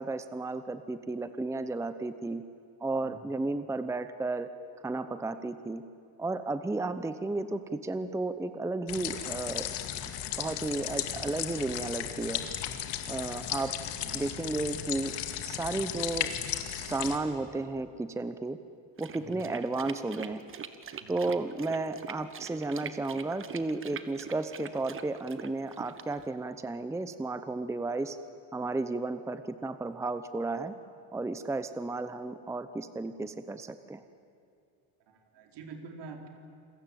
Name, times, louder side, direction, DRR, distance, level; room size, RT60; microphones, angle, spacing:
voice 1, 0.0-2.4 2.8-4.5 4.8-5.8 6.2-9.7 10.4-12.4 13.1-13.7 14.1-15.1 15.4-16.3 16.6-18.6 19.0-20.4 21.1-28.2 28.5-30.7 31.1-34.0, right 2 dB, 5° right, 11 dB, 0.8 m, -33 dB
sound 1, 8.9-17.2, left 11 dB, 70° left, 2.3 m, -35 dB
sound 2, 19.0-26.3, right 7 dB, 30° right, 1.3 m, -44 dB
voice 2, 19.1-19.4 21.0-21.3 35.1-36.3, right 4 dB, 70° right, 3 dB, 4.3 m, -47 dB
28.5 x 21.5 x 9.2 m, 2.4 s
cardioid pair, 140°, 42 cm